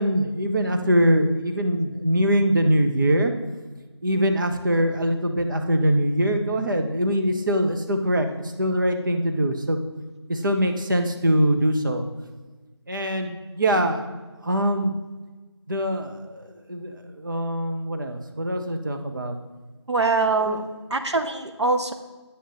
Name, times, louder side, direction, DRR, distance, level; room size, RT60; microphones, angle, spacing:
voice 1, 0.0-3.3 4.0-9.8 10.3-12.1 12.9-14.0 14.4-15.0 15.7-19.3 20.4-20.6, equal, 45° right, 5 dB, 0.9 m, -23 dB
voice 2, 19.9-20.6 20.9-21.9, right 3 dB, 75° right, 7 dB, 0.9 m, -23 dB
10.0 x 7.5 x 3.9 m, 1.3 s
figure-of-eight pair, 165°, 15 cm